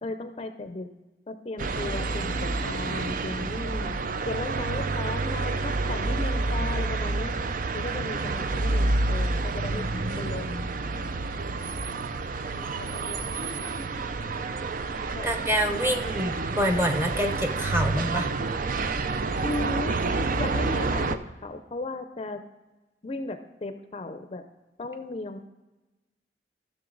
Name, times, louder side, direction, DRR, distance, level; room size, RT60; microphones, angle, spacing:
voice 1, 0.0-0.9 1.3-2.4 2.6-4.0 4.3-7.3 7.7-9.8 10.2-11.1 12.5-13.3 13.5-14.1 15.1-15.3 15.8-16.2 19.4-22.4 23.0-24.4 24.8-25.4, left 2 dB, 35° left, 8 dB, 0.5 m, -36 dB
sound 1, 1.6-21.2, right 3 dB, 50° right, 0.5 m, -29 dB
voice 2, 9.7-10.3 15.2-18.3, equal, 15° right, 5 dB, 0.9 m, -27 dB
14.0 x 6.4 x 3.9 m, 1.1 s
head